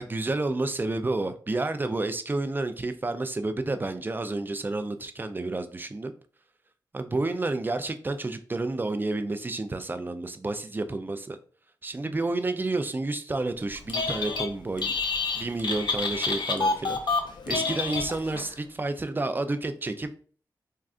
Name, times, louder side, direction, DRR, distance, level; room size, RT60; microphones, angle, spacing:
voice 1, 0.0-6.1 6.9-11.4 11.8-14.9 15.3-17.0 17.5-20.1, right 2 dB, 25° right, 0.3 m, -30 dB
Telephone, 13.8-14.5 14.8-18.5, left 4 dB, 65° left, 0.5 m, -28 dB
3.6 x 2.3 x 2.4 m
wide cardioid pair, 75°, 8 cm